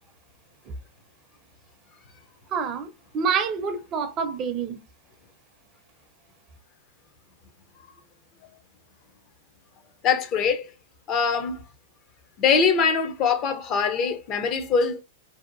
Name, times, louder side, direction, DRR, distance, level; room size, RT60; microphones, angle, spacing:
voice 1, 2.5-2.9 3.1-4.8, right 6 dB, 30° right, 0.5 m, -27 dB
voice 2, 10.0-10.7 11.1-11.6 12.4-15.0, left 5 dB, 35° left, 0.6 m, -23 dB
2.7 x 2.2 x 2.5 m
hypercardioid pair, 120°, 0 cm